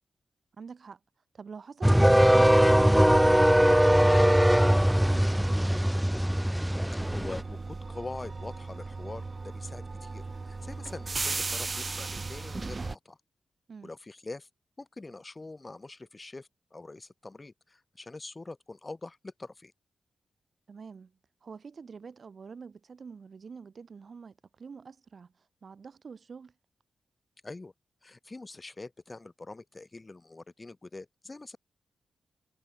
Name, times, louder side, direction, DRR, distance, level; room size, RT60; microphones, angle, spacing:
voice 1, 0.6-1.0 1.3-3.8 4.2-6.0 13.7-13.9 20.7-21.1 21.4-25.3 25.6-26.5, right 5 dB, 60° right, 2.5 m, -45 dB
sound 1, 1.8-7.4, equal, 5° right, 0.4 m, -21 dB
voice 2, 6.9-13.2 13.8-14.5 14.8-19.7 27.4-27.7 28.0-31.6, left 2 dB, 35° left, 3.6 m, -44 dB
sound 2, 7.0-13.0, right 3 dB, 45° right, 0.7 m, -36 dB
supercardioid pair, 40°, 0 cm